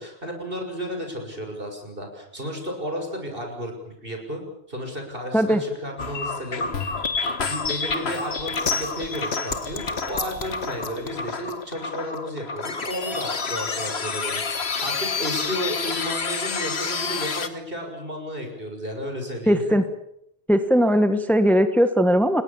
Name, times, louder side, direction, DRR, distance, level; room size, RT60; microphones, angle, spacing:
voice 1, 0.0-4.4 4.7-7.0 7.5-19.6, equal, 60° right, 3 dB, 6.7 m, -33 dB
sound 1, 6.0-17.5, left 4 dB, 85° left, 1.8 m, -28 dB
voice 2, 19.5-19.8 20.5-22.4, equal, ahead, 9 dB, 1.4 m, -19 dB
29.5 x 20.5 x 7.3 m, 0.76 s
omnidirectional pair, 1.0 m